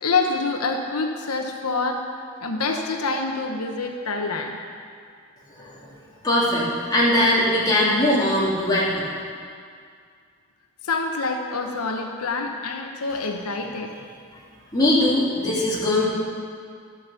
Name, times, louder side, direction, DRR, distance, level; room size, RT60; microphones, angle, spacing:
voice 1, 0.0-2.0 2.4-4.6 10.8-13.9, left 3 dB, 85° left, 3 dB, 0.9 m, -26 dB
voice 2, 5.6-5.9 6.2-9.1 14.7-16.1, left 1 dB, 20° left, -7 dB, 2.5 m, -21 dB
11.5 x 7.6 x 6.9 m, 2.2 s
head